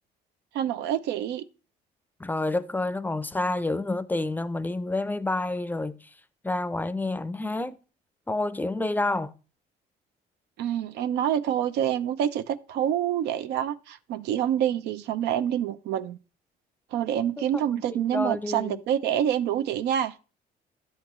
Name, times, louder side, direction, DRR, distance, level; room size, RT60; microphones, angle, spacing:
voice 1, 0.5-1.4 10.6-16.2 16.9-20.1, right 10 dB, 80° right, 0.6 m, -27 dB
voice 2, 2.2-6.0 6.4-7.8 8.3-9.3 17.4-17.5 18.1-18.8, left 2 dB, 10° left, 0.5 m, -28 dB
11.0 x 8.3 x 3.1 m
cardioid pair, 110°, 17 cm